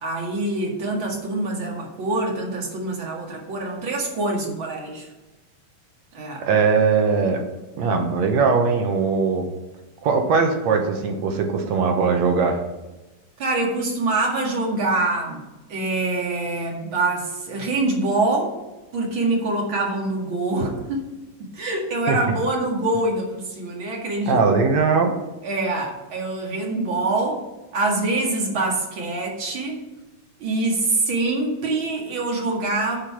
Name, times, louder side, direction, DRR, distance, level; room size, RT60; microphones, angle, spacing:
voice 1, 0.0-5.1 6.1-6.5 13.4-15.4 15.7-18.5 18.9-21.1 21.4-24.4 25.4-27.4 27.7-29.8 30.4-33.0, right 2 dB, 45° right, -1 dB, 2.5 m, -25 dB
voice 2, 6.4-7.4 7.8-9.5 10.0-12.6 22.1-22.2 24.3-25.1, right 5 dB, 65° right, 3 dB, 2.2 m, -20 dB
11.0 x 5.2 x 6.1 m, 1.1 s
omnidirectional pair, 3.6 m